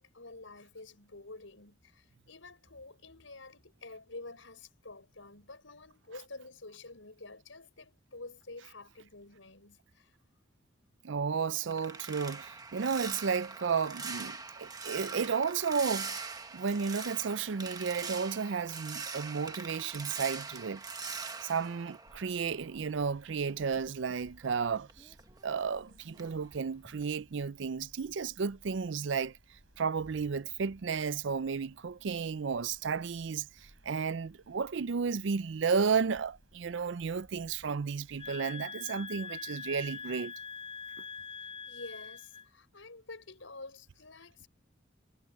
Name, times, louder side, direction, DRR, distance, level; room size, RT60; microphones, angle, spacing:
voice 1, 0.0-10.1 41.4-44.5, left 3 dB, 80° left, 5.9 m, -49 dB
voice 2, 11.0-16.2 16.5-25.1 25.4-29.4 29.8-33.5 33.8-40.3, right 5 dB, 70° right, 0.5 m, -33 dB
sound 1, 11.2-22.8 23.1-25.8 26.1-26.5 26.8-27.1, right 4 dB, 20° right, 1.4 m, -43 dB
sound 2, 22.0-38.4, right 1 dB, 85° right, 6.0 m, -62 dB
sound 3, 38.2-42.5, left 5 dB, 30° left, 3.9 m, -43 dB
head